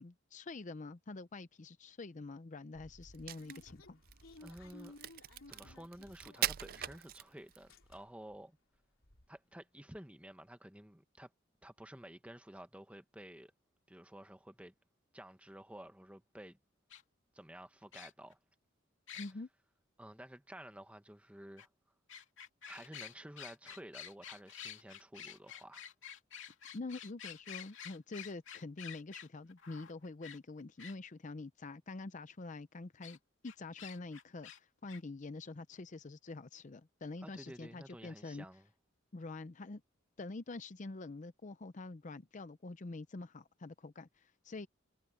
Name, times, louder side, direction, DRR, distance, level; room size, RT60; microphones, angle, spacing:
voice 1, 0.0-4.0 19.2-19.5 26.7-33.2 33.4-38.5 39.1-39.8 40.2-44.7, left 3 dB, 40° left, 0.6 m, -46 dB
sound 1, 2.7-7.2 7.5-8.4 8.7-8.8 9.0-9.3, left 2 dB, 85° left, 3.2 m, -57 dB
Crack, 3.1-7.7, right 12 dB, 45° right, 0.4 m, -41 dB
voice 2, 4.4-5.0 5.5-8.6 9.3-11.3 11.6-13.5 13.9-14.7 15.1-16.6 17.3-18.4 20.0-21.7 22.7-25.8 37.2-38.7, right 1 dB, 5° right, 1.2 m, -52 dB
sound 2, 16.9-17.0 17.9-18.3 19.1-19.3 21.6-21.7 22.1-30.9 33.0-33.2 33.4-34.6 34.9-35.0, left 9 dB, 65° left, 2.9 m, -49 dB
head